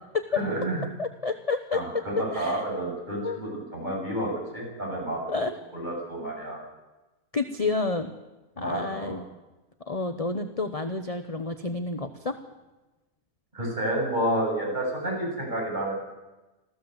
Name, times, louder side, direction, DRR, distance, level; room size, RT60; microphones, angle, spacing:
voice 1, 0.3-0.8 1.7-5.4 5.7-6.6 8.6-9.2 13.5-15.9, right 1 dB, 30° right, -1 dB, 7.9 m, -30 dB
voice 2, 1.0-2.0 2.3-2.6 3.2-3.4 5.3-5.5 7.3-8.1 8.6-9.3 9.9-12.4, left 3 dB, 25° left, 8 dB, 1.1 m, -29 dB
26.0 x 15.5 x 8.1 m, 1.1 s
omnidirectional pair, 1.6 m